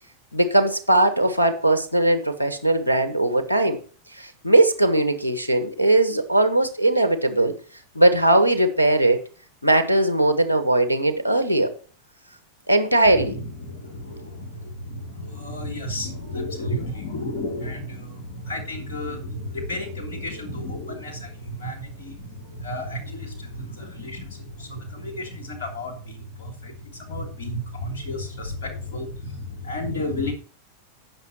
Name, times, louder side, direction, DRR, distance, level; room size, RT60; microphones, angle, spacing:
voice 1, 0.3-3.8 4.1-7.5 7.9-9.2 9.6-11.7 12.7-13.4, right 2 dB, 85° left, 1.3 m, -19 dB
voice 2, 13.6-14.5 14.9-21.3 21.6-22.1 22.6-23.3 23.5-24.2 24.7-25.9 26.4-26.5 27.1-29.3 29.6-30.3, left 1 dB, 60° left, 3.1 m, -32 dB
18.5 x 6.3 x 3.0 m
figure-of-eight pair, 90°, 0 cm